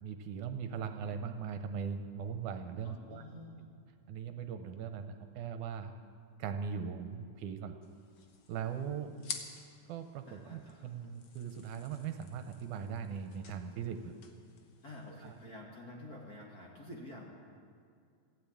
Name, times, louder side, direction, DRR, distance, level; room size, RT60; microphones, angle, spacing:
voice 1, 0.0-3.2 4.1-5.9 6.4-7.8 8.5-9.2 9.9-14.2 15.2-15.3, right 7 dB, 80° right, 7 dB, 2.2 m, -40 dB
voice 2, 2.8-3.7 10.3-10.9 14.8-17.3, left 1 dB, 35° left, -3 dB, 2.0 m, -49 dB
sound 1, 7.8-15.4, left 6 dB, 60° left, 1.4 m, -50 dB
15.5 x 10.5 x 8.7 m, 2.3 s
omnidirectional pair, 3.6 m